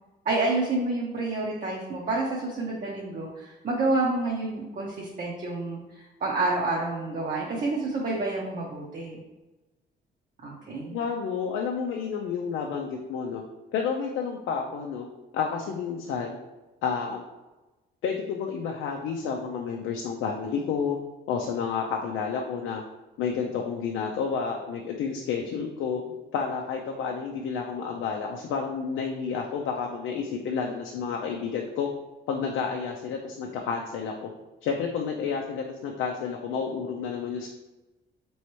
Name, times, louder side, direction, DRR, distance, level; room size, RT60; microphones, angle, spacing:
voice 1, 0.2-9.2 10.4-11.0, right 2 dB, 45° right, -3 dB, 0.8 m, -29 dB
voice 2, 10.9-13.4 13.7-15.1 15.3-16.3 16.8-17.2 18.0-21.0 21.3-22.8 23.2-26.0 26.3-31.9 32.3-34.3 34.6-37.5, left 6 dB, 90° left, 1 dB, 0.4 m, -30 dB
4.3 x 3.1 x 3.0 m, 1.1 s
cardioid pair, 90°, 20 cm